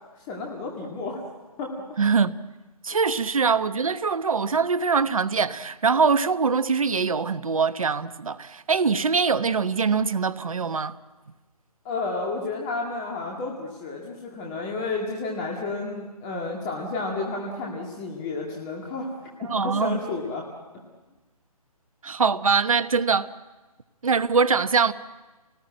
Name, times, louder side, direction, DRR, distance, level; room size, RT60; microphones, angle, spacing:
voice 1, 0.3-1.2 1.6-1.7 3.0-3.1 11.8-19.1 19.4-20.4, left 3 dB, 15° left, 2.1 m, -31 dB
voice 2, 2.0-2.3 2.8-10.9 19.4-20.0 22.0-23.3 24.0-24.9, right 5 dB, 60° right, 1.0 m, -23 dB
27.0 x 19.0 x 8.9 m
figure-of-eight pair, 145°, 20 cm